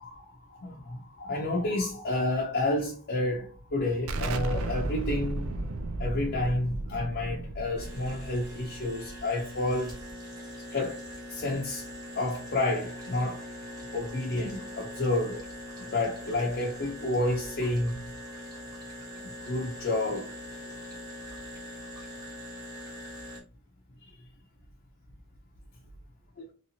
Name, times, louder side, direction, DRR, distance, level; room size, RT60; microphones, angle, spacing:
voice 1, 0.0-5.5 6.0-9.9 10.7-11.9 12.2-13.4 13.9-15.4 15.8-18.0 19.2-20.4 20.7-20.8 26.4-26.5, left 2 dB, 50° left, 0.5 m, -30 dB
Explosion, 4.1-9.5, right 2 dB, 85° right, 0.4 m, -34 dB
sound 1, 7.8-23.4, equal, 20° right, 0.9 m, -42 dB
3.1 x 2.8 x 2.7 m
head